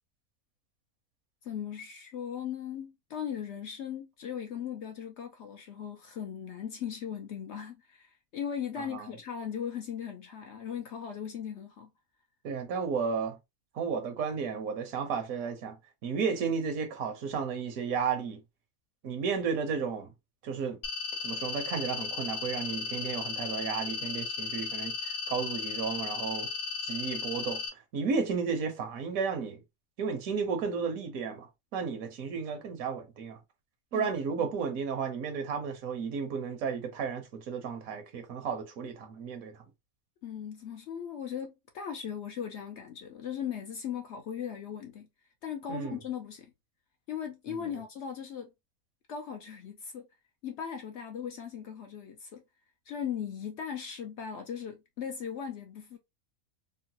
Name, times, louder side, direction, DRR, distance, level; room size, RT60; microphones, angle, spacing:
voice 1, 1.4-11.9 33.9-34.1 40.2-45.1 45.4-46.5 47.1-48.5 49.1-50.1 50.4-52.4 52.9-56.0, left 8 dB, 65° left, 0.7 m, -38 dB
voice 2, 12.4-13.4 13.7-15.8 16.0-18.4 19.0-20.1 20.4-20.8 21.2-26.5 26.8-29.6 30.0-33.4 33.9-39.6 45.7-46.0, right 5 dB, 75° right, 1.2 m, -33 dB
sound 1, 20.8-27.7, left 5 dB, 85° left, 1.3 m, -35 dB
3.8 x 2.1 x 2.7 m
omnidirectional pair, 1.5 m